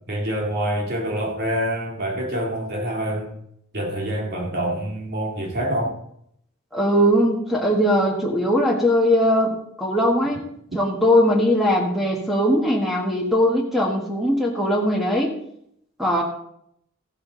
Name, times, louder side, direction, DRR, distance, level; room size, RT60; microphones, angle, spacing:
voice 1, 0.1-3.3 3.7-6.0, equal, 50° right, 0 dB, 2.6 m, -26 dB
voice 2, 6.7-10.4 10.7-15.3 16.0-16.2, equal, ahead, 0 dB, 1.7 m, -20 dB
15.0 x 8.4 x 4.0 m, 0.71 s
head